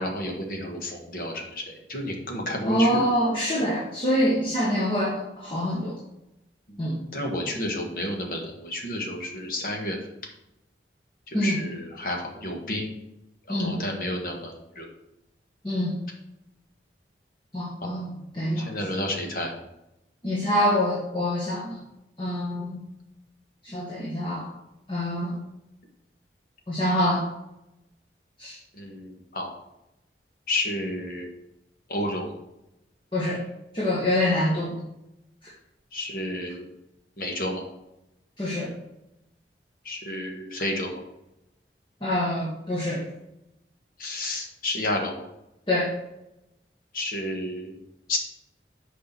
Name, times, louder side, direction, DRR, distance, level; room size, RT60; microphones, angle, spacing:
voice 1, 0.0-3.1 7.1-10.0 11.3-12.9 13.5-14.9 17.8-17.9 18.6-19.5 28.8-29.5 30.5-31.3 31.9-32.3 35.9-36.7 37.2-37.6 39.8-41.0 44.0-45.3 46.9-47.7 48.1-48.2, left 1 dB, 50° left, 1 dB, 1.6 m, -31 dB
voice 2, 2.7-5.9 6.8-7.0 11.3-11.6 13.5-13.8 15.6-15.9 17.5-18.7 20.2-21.8 22.2-22.8 23.6-24.5 24.9-25.4 26.7-27.3 28.4-28.6 33.1-33.4 33.7-34.7 38.4-38.7 42.0-43.0 45.7-45.9, left 1 dB, 30° left, -5 dB, 1.6 m, -25 dB
6.5 x 5.1 x 5.9 m, 0.88 s
head